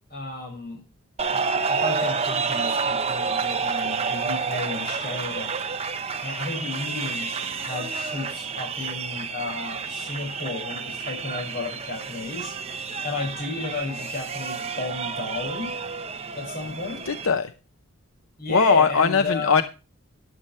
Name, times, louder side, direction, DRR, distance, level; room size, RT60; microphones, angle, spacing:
voice 1, 0.1-0.8 1.3-5.6 6.2-12.6 13.0-15.7 16.3-17.1 18.4-19.6, left 3 dB, 45° left, 6.1 m, -33 dB
sound 1, 1.2-17.3, right 5 dB, 30° right, 0.9 m, -29 dB
voice 2, 17.1-17.5 18.5-19.6, left 5 dB, 80° left, 0.7 m, -20 dB
13.0 x 11.0 x 3.3 m
head